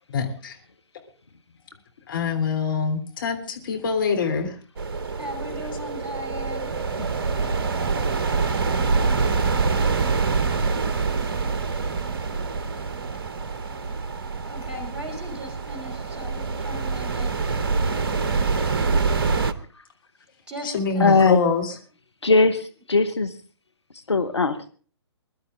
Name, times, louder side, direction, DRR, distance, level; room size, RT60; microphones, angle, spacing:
voice 1, 0.1-0.6 2.1-4.6 20.6-21.8, left 5 dB, 50° left, 3 dB, 3.3 m, -25 dB
sound 1, 4.8-19.5, right 4 dB, 55° right, 1.1 m, -25 dB
voice 2, 5.2-6.7 14.4-17.3 20.5-21.3, left 1 dB, 5° right, -2 dB, 4.1 m, -37 dB
voice 3, 21.0-21.4 22.2-23.3 24.1-24.7, left 3 dB, 75° left, 9 dB, 1.2 m, -19 dB
21.5 x 12.0 x 3.7 m, 0.39 s
figure-of-eight pair, 125°, 14 cm